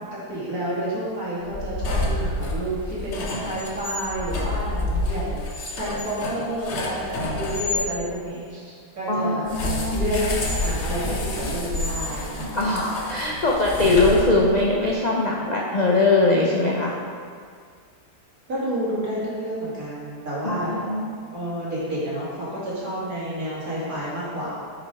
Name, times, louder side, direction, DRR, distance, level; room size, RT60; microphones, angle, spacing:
voice 1, 0.3-9.5 9.9-10.2 10.6-12.5 18.5-20.8 21.3-24.6, right 1 dB, 60° right, -8 dB, 2.7 m, -30 dB
sound 1, 1.4-7.9 9.5-14.7, left 1 dB, 50° left, 1.1 m, -28 dB
voice 2, 9.1-10.0 12.5-16.9 20.4-21.1, left 2 dB, 80° left, -2 dB, 0.3 m, -21 dB
6.3 x 6.2 x 4.6 m, 2.1 s
omnidirectional pair, 1.7 m